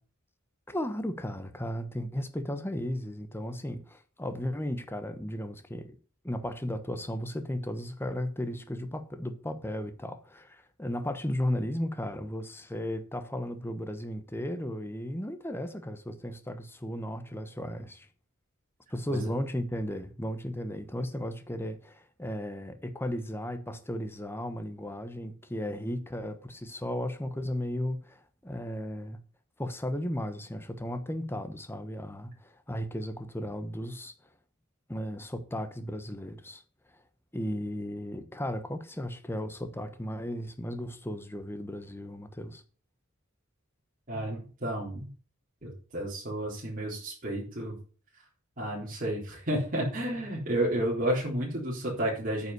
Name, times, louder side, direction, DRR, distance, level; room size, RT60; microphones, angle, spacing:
voice 1, 0.7-6.0 6.2-18.1 18.9-29.2 29.6-34.1 34.9-36.6 37.3-42.6, left 1 dB, 10° left, 1.1 m, -35 dB
voice 2, 44.1-45.1 45.6-47.7 48.6-52.5, right 1 dB, 40° right, 3.8 m, -31 dB
9.3 x 5.7 x 8.0 m
head